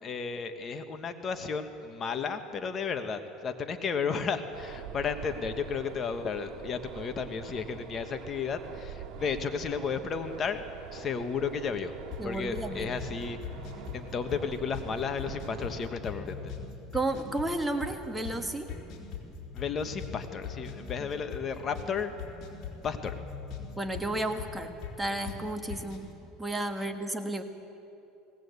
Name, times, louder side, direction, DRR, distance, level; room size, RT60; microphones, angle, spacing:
voice 1, 0.0-10.6 10.9-12.0 12.2-13.4 13.9-16.5 19.5-22.1 22.8-23.2, left 6 dB, 35° left, 8 dB, 1.3 m, -33 dB
sound 1, 4.5-15.9, right 9 dB, 60° right, 2.0 m, -45 dB
sound 2, 12.1-26.1, left 5 dB, 50° left, 3.8 m, -42 dB
voice 2, 12.2-13.0 16.9-18.7 23.8-26.0 26.4-27.4, right 2 dB, 10° right, 5 dB, 1.5 m, -32 dB
20.0 x 18.0 x 8.2 m, 2.9 s
supercardioid pair, 110°, 0 cm